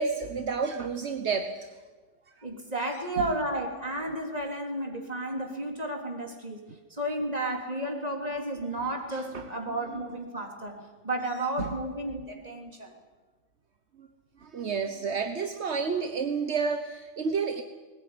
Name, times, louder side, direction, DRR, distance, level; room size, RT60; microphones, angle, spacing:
voice 1, 0.0-1.7 2.9-3.0 9.1-9.8 11.6-11.7 14.0-14.1 14.4-17.6, right 5 dB, 70° right, 7 dB, 1.4 m, -30 dB
voice 2, 2.4-6.6 7.0-10.8 11.0-12.9, right 1 dB, 35° right, 2 dB, 3.4 m, -32 dB
20.0 x 19.5 x 9.6 m, 1.3 s
omnidirectional pair, 1.2 m